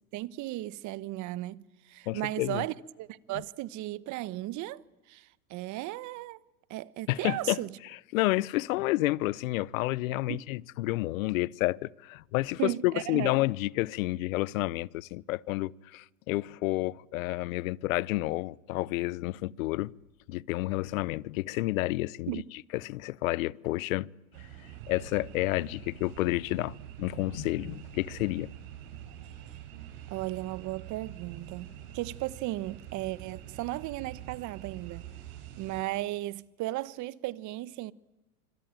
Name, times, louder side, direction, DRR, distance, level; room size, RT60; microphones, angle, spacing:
voice 1, 0.1-4.8 5.1-6.4 6.7-7.8 10.3-10.4 12.6-13.3 22.3-22.4 30.1-35.0 35.6-37.9, right 16 dB, 45° right, 1.2 m, -35 dB
voice 2, 2.1-2.6 7.1-7.6 8.1-19.9 20.3-22.4 22.8-24.1 24.9-28.5, left 19 dB, 70° left, 0.9 m, -30 dB
sound 1, 24.3-35.8, right 11 dB, 65° right, 7.3 m, -46 dB
26.0 x 25.0 x 9.1 m
hypercardioid pair, 110°, 42 cm